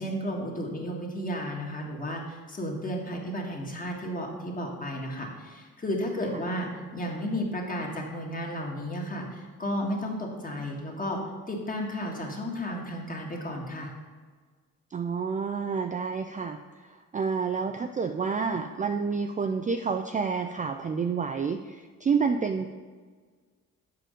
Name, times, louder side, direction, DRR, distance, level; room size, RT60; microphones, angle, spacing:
voice 1, 0.0-11.2 11.5-13.9, equal, 25° left, -1 dB, 1.7 m, -33 dB
voice 2, 14.9-22.7, right 5 dB, 25° right, 6 dB, 0.3 m, -29 dB
7.6 x 5.1 x 5.1 m, 1.5 s
cardioid pair, 95°, 34 cm